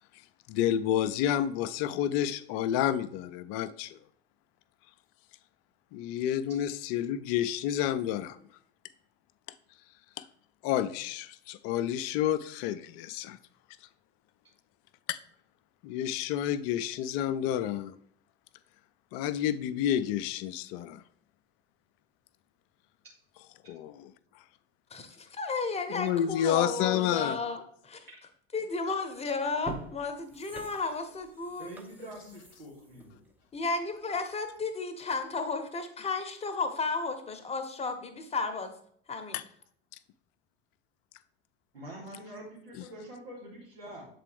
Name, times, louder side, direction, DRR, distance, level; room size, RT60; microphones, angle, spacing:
voice 1, 0.5-4.0 5.9-8.4 10.2-10.3 10.6-13.4 15.1-15.2 15.8-17.9 19.1-21.0 23.7-24.1 25.9-27.4 39.3-39.4, left 11 dB, 50° left, 14 dB, 0.5 m, -30 dB
voice 2, 24.9-28.1 28.5-31.7 33.5-38.7 39.1-39.4, left 4 dB, 20° left, 7 dB, 0.9 m, -33 dB
sound 1, 28.8-29.0 29.5-34.2 34.6-34.7, right 2 dB, 5° right, 0.8 m, -46 dB
voice 3, 31.6-33.2 41.7-44.1, right 1 dB, 85° right, -5 dB, 1.7 m, -46 dB
7.3 x 3.9 x 3.3 m, 0.63 s
figure-of-eight pair, 70°, 30 cm